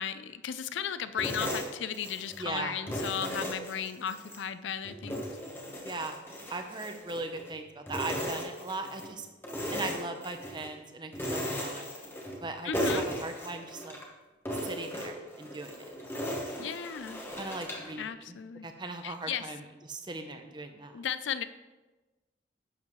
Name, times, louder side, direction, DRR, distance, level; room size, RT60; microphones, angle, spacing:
voice 1, 0.0-5.3 12.6-13.1 16.6-17.2 18.0-18.7 19.0-19.5 20.9-21.4, left 8 dB, 80° left, 13 dB, 0.4 m, -35 dB
sound 1, 1.2-2.5 2.9-4.4 4.8-7.5 7.9-9.1 9.4-10.7 11.1-12.5 12.7-14.0 14.4-17.9, equal, 10° left, 1.3 m, -36 dB
voice 2, 2.4-2.8 5.8-6.2 6.5-9.3 9.7-11.9 12.4-14.0 14.6-15.9 17.3-21.0, right 2 dB, 25° right, 6 dB, 0.7 m, -39 dB
11.0 x 7.3 x 3.2 m, 1.2 s
head